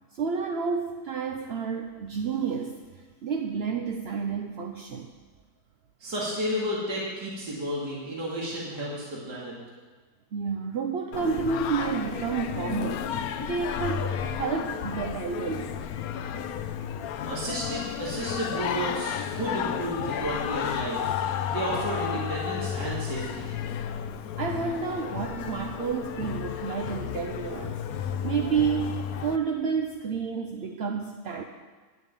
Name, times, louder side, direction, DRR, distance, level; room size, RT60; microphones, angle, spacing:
voice 1, 0.2-2.8 3.2-5.1 10.3-15.7 24.4-31.4, right 5 dB, 55° right, 3 dB, 0.7 m, -30 dB
voice 2, 6.0-9.5 17.2-21.1 21.5-23.5, right 1 dB, 75° right, -5 dB, 3.0 m, -32 dB
Singing, 11.1-29.4, left 9 dB, 70° left, 1.0 m, -32 dB
10.0 x 8.2 x 8.8 m, 1.4 s
omnidirectional pair, 1.8 m